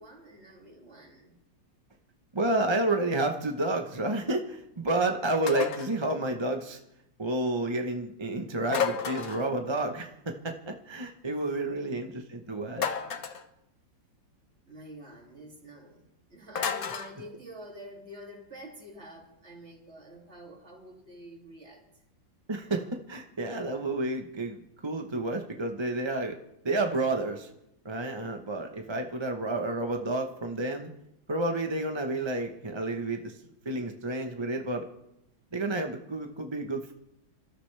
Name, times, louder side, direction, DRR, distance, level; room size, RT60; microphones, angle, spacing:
voice 1, 0.0-1.3 11.2-12.1 14.7-22.0, equal, 35° right, 0 dB, 3.0 m, -48 dB
voice 2, 2.3-6.8 7.2-12.9 22.5-26.4 26.6-27.5 27.8-30.9 31.3-33.4 33.6-34.9 35.5-36.9, right 2 dB, 20° right, 3 dB, 0.8 m, -30 dB
sound 1, 5.5-6.0 8.7-9.5 12.8-13.5 16.6-17.1, left 7 dB, 55° left, 1.4 m, -31 dB
27.0 x 14.0 x 3.4 m, 0.82 s
omnidirectional pair, 2.0 m